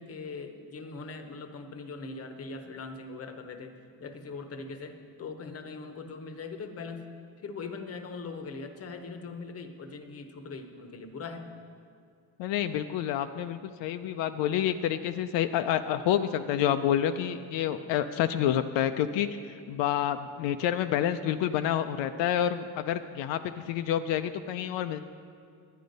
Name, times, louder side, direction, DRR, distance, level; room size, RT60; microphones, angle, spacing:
voice 1, 0.0-3.7 4.0-7.1 7.4-11.5 17.8-17.9, left 4 dB, 35° left, 8 dB, 0.9 m, -41 dB
voice 2, 12.4-19.4 19.7-25.0, left 10 dB, 75° left, 9 dB, 0.5 m, -28 dB
10.5 x 10.0 x 5.2 m, 2.3 s
cardioid pair, 135°, 43 cm